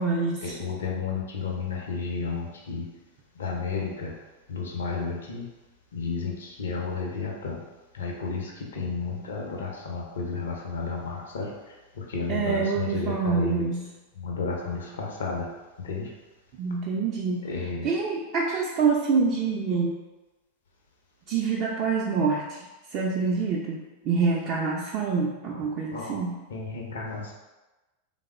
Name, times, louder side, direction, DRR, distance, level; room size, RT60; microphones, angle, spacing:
voice 1, 0.0-0.6 12.3-13.8 16.6-20.0 21.3-22.6 22.9-26.4, right 5 dB, 35° right, -4 dB, 0.4 m, -26 dB
voice 2, 0.6-2.8 3.4-4.1 4.5-5.4 5.9-7.6 8.0-11.5 12.1-13.6 14.2-15.5 15.9-16.0 17.5-17.8 25.9-26.2 26.5-27.3, left 4 dB, 65° left, -1 dB, 0.5 m, -32 dB
3.4 x 2.0 x 3.3 m, 1.1 s
figure-of-eight pair, 90°, 0 cm